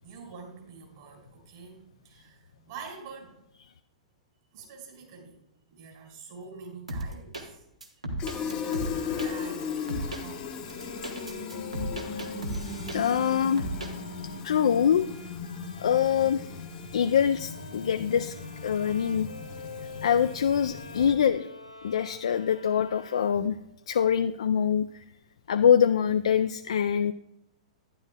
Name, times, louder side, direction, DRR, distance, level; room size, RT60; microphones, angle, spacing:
voice 1, 0.0-3.4 4.5-5.4 5.7-7.7 8.3-11.0 11.3-12.4, right 5 dB, 45° right, 1 dB, 2.8 m, -47 dB
sound 1, 6.9-7.4 7.8-9.3 9.9-10.2 10.7-13.3 13.6-13.9, right 1 dB, 80° right, 1.4 m, -35 dB
Fill (with liquid), 8.2-21.3, left 6 dB, 25° left, 0.8 m, -37 dB
sound 2, 8.6-23.7, left 2 dB, 85° left, 1.5 m, -46 dB
voice 2, 12.9-13.6 14.4-15.1 15.8-16.5 16.9-18.3 18.6-19.3 20.0-21.5 21.8-23.5 23.9-25.0 25.5-27.1, left 8 dB, 60° left, 8 dB, 0.3 m, -24 dB
12.0 x 10.5 x 2.2 m, 0.79 s
figure-of-eight pair, 105°, 4 cm